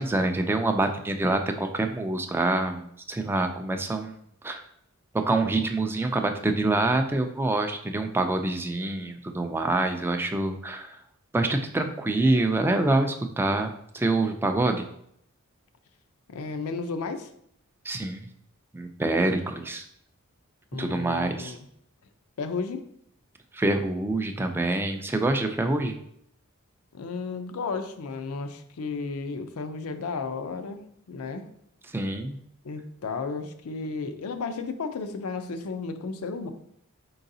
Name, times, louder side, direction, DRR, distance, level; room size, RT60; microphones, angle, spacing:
voice 1, 0.0-4.2 4.4-4.6 5.1-11.0 11.3-14.9 17.8-18.2 18.7-19.8 20.8-21.5 23.5-26.0 31.9-32.4, right 2 dB, 10° right, 5 dB, 0.3 m, -26 dB
voice 2, 16.3-17.3 20.7-21.6 22.4-22.8 26.9-31.5 32.6-36.5, left 4 dB, 80° left, 8 dB, 0.5 m, -33 dB
4.6 x 3.9 x 2.6 m, 0.71 s
head